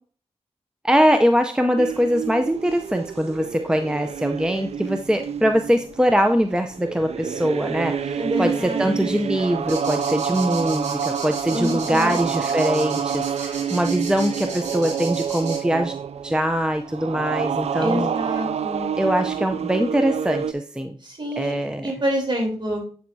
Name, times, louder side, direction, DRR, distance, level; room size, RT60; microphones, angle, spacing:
voice 1, 0.8-15.9 16.2-18.1 19.0-20.9 21.4-21.9, equal, 5° right, 6 dB, 0.6 m, -22 dB
sound 1, 1.8-20.5, right 7 dB, 70° right, 0.4 m, -28 dB
voice 2, 8.2-9.2 11.5-12.1 17.8-18.9 21.0-21.6 21.8-22.8, equal, 45° right, -1 dB, 3.5 m, -27 dB
sound 2, 9.7-15.6, right 3 dB, 85° right, 3.1 m, -35 dB
8.2 x 7.6 x 2.7 m, 0.42 s
cardioid pair, 65°, 11 cm